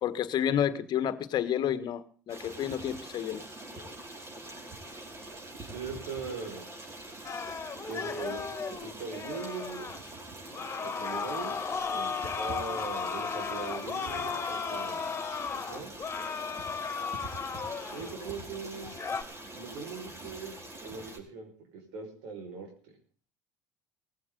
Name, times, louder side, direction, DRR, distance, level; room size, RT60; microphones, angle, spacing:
voice 1, 0.0-3.4, left 10 dB, 50° left, 13 dB, 1.5 m, -30 dB
Stream, 2.3-21.2, right 2 dB, 30° right, 5.3 m, -44 dB
voice 2, 5.6-6.6 7.9-8.4 8.7-9.9 10.8-11.5 11.9-15.0 15.6-15.9 17.9-18.9 19.5-20.6 20.8-22.9, right 5 dB, 70° right, 3 dB, 5.6 m, -40 dB
sound 1, 7.2-10.0 10.5-18.4 18.8-19.2, left 5 dB, 25° left, 2.3 m, -35 dB
19.0 x 15.5 x 4.0 m, 0.43 s
hypercardioid pair, 70°, 9 cm